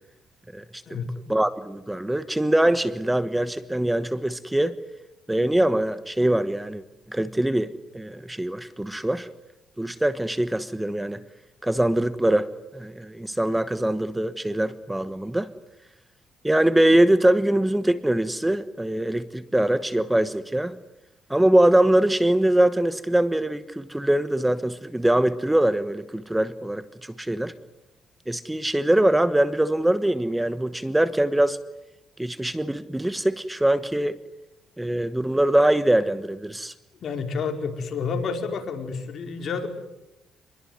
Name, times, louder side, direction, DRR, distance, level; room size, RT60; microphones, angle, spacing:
voice 1, 0.5-4.8 5.3-6.8 7.1-9.3 9.8-11.2 11.6-15.5 16.4-20.8 21.3-27.5 28.3-31.6 32.2-34.2 34.8-36.7, right 1 dB, 10° right, 13 dB, 1.2 m, -23 dB
voice 2, 37.0-39.7, left 5 dB, 60° left, 5 dB, 4.8 m, -29 dB
27.0 x 21.5 x 9.5 m, 0.92 s
cardioid pair, 90°, 0 cm